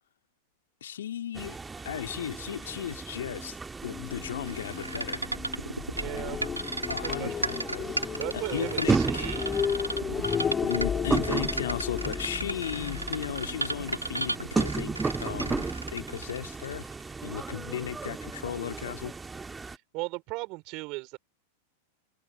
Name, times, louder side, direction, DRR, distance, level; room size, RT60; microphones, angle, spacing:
voice 1, 0.8-1.6 1.8-5.2 6.9-9.4 10.7-16.9 17.2-19.1, left 10 dB, 65° left, 2.8 m, -36 dB
sound 1, 1.3-19.8, right 4 dB, 10° right, 2.0 m, -35 dB
sound 2, 3.8-14.8, left 7 dB, 20° left, 4.6 m, -34 dB
sound 3, 4.5-17.0, right 2 dB, 85° right, 3.4 m, -34 dB
voice 2, 5.9-6.4 7.0-7.4 8.2-9.6 19.6-21.2, right 25 dB, 40° right, 5.3 m, -37 dB
figure-of-eight pair, 90°, 0 cm